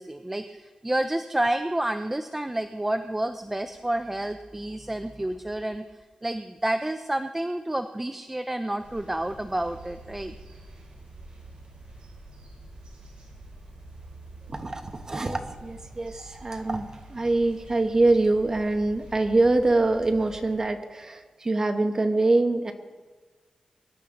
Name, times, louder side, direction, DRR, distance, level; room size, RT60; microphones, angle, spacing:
voice 1, 0.0-5.8 6.2-10.3, right 1 dB, 10° right, 8 dB, 0.4 m, -29 dB
sound 1, 8.8-20.6, right 2 dB, 55° right, 5.5 m, -47 dB
voice 2, 14.5-22.7, right 2 dB, 25° right, 5 dB, 1.1 m, -24 dB
22.5 x 11.0 x 3.8 m, 1.4 s
wide cardioid pair, 165°, 2 cm